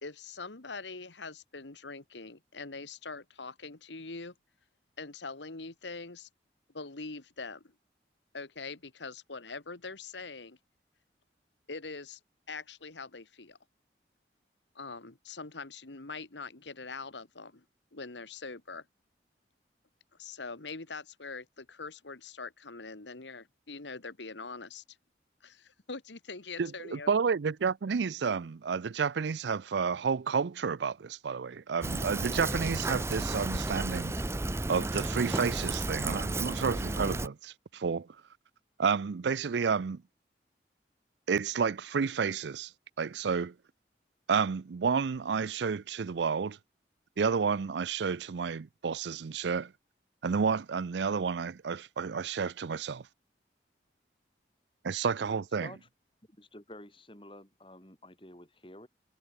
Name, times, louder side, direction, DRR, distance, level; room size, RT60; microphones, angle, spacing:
voice 1, 0.0-4.3 5.0-6.3 6.7-7.6 8.3-10.6 11.7-12.2 12.5-13.6 14.8-17.6 17.9-18.9 20.2-24.8 25.4-27.1, left 4 dB, 90° left, 1.8 m, -43 dB
voice 2, 26.6-34.1 34.7-38.1 38.8-40.0 41.3-42.7 43.0-43.5 44.3-46.6 47.2-49.7 50.2-53.0 54.8-55.7, right 5 dB, 80° right, 0.5 m, -30 dB
Fill (with liquid), 31.8-37.3, right 2 dB, 15° right, 0.6 m, -33 dB
voice 3, 56.3-58.9, left 1 dB, 30° left, 6.8 m, -50 dB
head